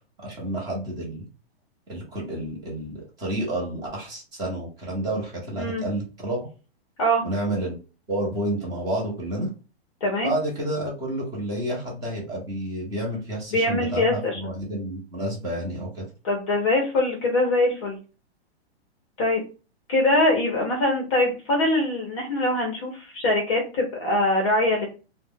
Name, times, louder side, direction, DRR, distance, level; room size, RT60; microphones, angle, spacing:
voice 1, 0.2-1.3 1.9-6.5 7.2-7.8 8.1-9.5 10.2-16.1, right 1 dB, 10° right, -3 dB, 0.8 m, -30 dB
voice 2, 10.0-10.3 13.5-14.4 16.2-18.0 19.2-19.4 19.9-24.8, left 1 dB, 30° left, 0 dB, 0.6 m, -23 dB
2.4 x 2.1 x 3.6 m, 0.33 s
hypercardioid pair, 170°, 32 cm